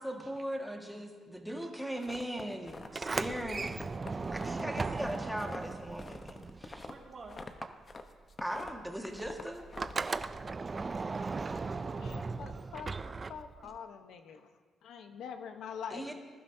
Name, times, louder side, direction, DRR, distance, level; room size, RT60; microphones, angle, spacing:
voice 1, 0.0-3.8 4.3-6.9 8.4-9.7 15.9-16.1, equal, 5° right, 2 dB, 1.7 m, -39 dB
sound 1, 2.0-3.4 3.7-8.0 8.3-10.3, left 3 dB, 35° left, 0.9 m, -46 dB
Sliding door, 2.8-7.1 7.4-13.8, right 4 dB, 30° right, 0.4 m, -37 dB
voice 2, 6.9-7.4 10.7-11.0 11.3-13.8, right 3 dB, 45° right, 0 dB, 2.2 m, -53 dB
voice 3, 12.0-14.5 14.8-16.1, left 7 dB, 75° left, 7 dB, 0.9 m, -45 dB
20.0 x 12.0 x 2.7 m, 1.5 s
cardioid pair, 90°, 0 cm